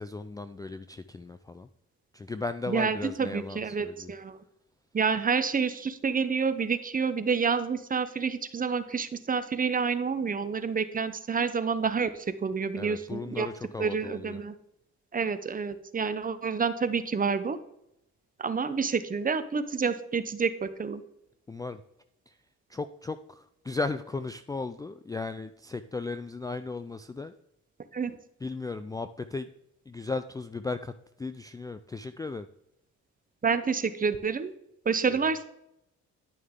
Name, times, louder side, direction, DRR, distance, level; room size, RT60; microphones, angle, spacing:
voice 1, 0.0-1.7 2.1-4.1 12.7-14.4 21.5-21.8 22.3-22.4 22.7-27.3 28.4-29.5 29.9-30.9 31.2-32.5 35.1-35.2, left 3 dB, 15° left, 11 dB, 0.3 m, -36 dB
voice 2, 2.7-4.4 4.9-13.5 13.8-14.5 15.1-17.6 18.4-21.0 27.9-28.2 33.4-34.5 34.8-35.4, right 5 dB, 30° right, 12 dB, 0.8 m, -28 dB
11.0 x 6.5 x 3.7 m, 0.81 s
cardioid pair, 90°, 30 cm